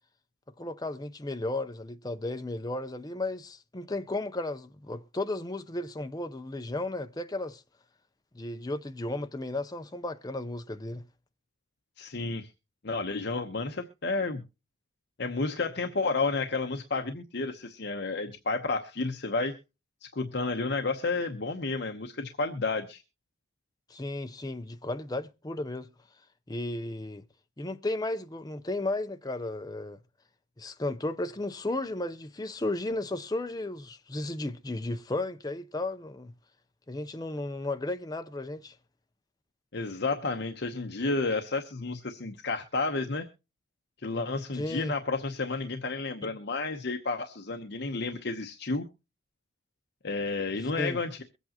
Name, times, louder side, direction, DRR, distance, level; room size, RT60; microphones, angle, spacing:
voice 1, 0.6-7.6 8.3-11.0 23.9-25.9 26.5-27.2 27.6-30.0 30.6-36.3 36.9-38.8 44.5-44.9 46.2-46.3 50.8-51.0, left 2 dB, 20° left, 0.6 m, -34 dB
voice 2, 12.0-12.5 12.8-14.4 15.2-19.6 20.0-23.0 39.7-43.3 44.0-48.9 50.0-51.2, left 3 dB, 55° left, 0.9 m, -31 dB
23.0 x 8.3 x 2.8 m
head